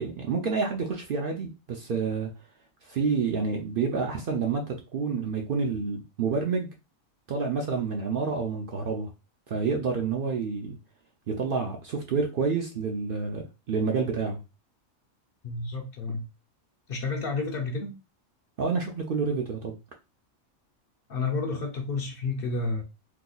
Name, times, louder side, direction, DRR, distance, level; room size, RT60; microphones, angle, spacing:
voice 1, 0.0-2.3 2.8-6.7 7.3-9.1 9.5-10.8 11.3-14.4 18.6-19.8, right 5 dB, 60° right, 0.6 m, -28 dB
voice 2, 15.4-16.2 16.9-17.9 21.1-22.8, left 3 dB, 60° left, 0.7 m, -30 dB
2.9 x 2.3 x 3.8 m
omnidirectional pair, 1.3 m